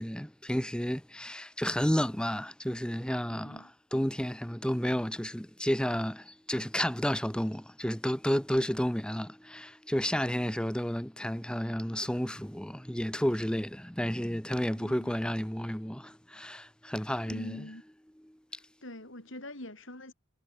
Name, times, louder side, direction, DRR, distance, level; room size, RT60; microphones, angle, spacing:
voice 1, 0.0-17.6 18.3-18.4, equal, 5° left, 1.2 m, -31 dB
voice 2, 3.3-3.7 14.7-15.2 16.8-17.8 18.5-20.1, left 1 dB, 65° left, 6.1 m, -45 dB
head